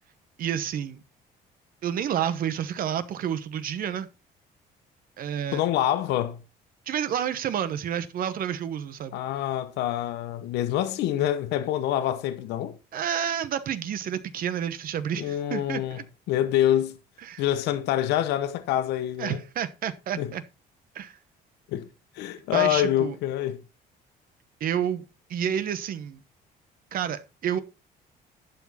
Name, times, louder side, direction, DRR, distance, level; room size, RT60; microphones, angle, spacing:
voice 1, 0.4-1.0 1.8-4.1 5.2-5.6 6.9-9.2 12.9-16.0 17.2-17.4 19.2-20.4 20.9-21.2 22.5-23.2 24.6-25.0 25.3-26.2 26.9-27.6, right 9 dB, 60° right, 1.0 m, -29 dB
voice 2, 5.5-6.4 9.1-12.7 15.2-16.0 16.3-17.0 17.4-19.4 20.2-20.3 21.7-21.9 22.2-23.6, left 12 dB, 85° left, 1.0 m, -26 dB
11.5 x 6.1 x 4.2 m
cardioid pair, 110°, 17 cm